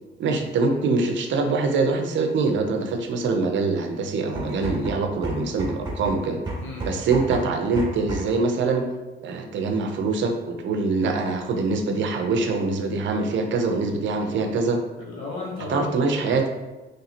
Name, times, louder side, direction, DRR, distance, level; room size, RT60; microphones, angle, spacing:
voice 1, 0.2-6.4 6.8-8.9 9.2-14.8 15.7-16.4, right 3 dB, 70° right, 4 dB, 0.6 m, -24 dB
sound 1, 4.4-8.5, right 1 dB, 25° right, 1.1 m, -32 dB
voice 2, 14.9-16.5, left 3 dB, 75° left, -3 dB, 1.1 m, -34 dB
3.2 x 2.8 x 4.1 m, 1.1 s
cardioid pair, 90°, 20 cm